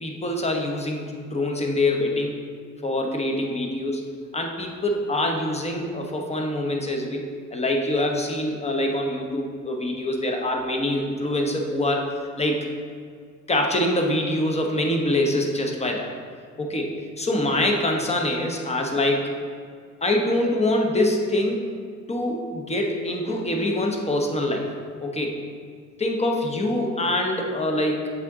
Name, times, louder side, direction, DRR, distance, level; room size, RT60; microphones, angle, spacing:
voice 1, 0.0-2.4 2.8-4.0 4.3-12.1 12.3-12.7 13.5-16.1 16.6-19.3 20.0-21.7 22.1-24.7 25.0-25.4 26.0-28.1, left 1 dB, 20° left, 2 dB, 0.9 m, -25 dB
7.3 x 3.8 x 3.6 m, 2.1 s
cardioid pair, 90°, 30 cm